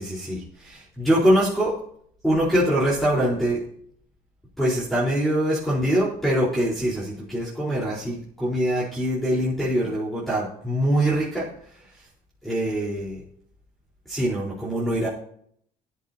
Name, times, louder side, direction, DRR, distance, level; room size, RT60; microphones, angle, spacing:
voice 1, 0.0-1.8 2.2-3.6 4.6-11.5 12.4-13.2 14.1-15.1, right 1 dB, ahead, -7 dB, 4.6 m, -23 dB
17.0 x 11.5 x 3.0 m, 0.65 s
cardioid pair, 110°, 17 cm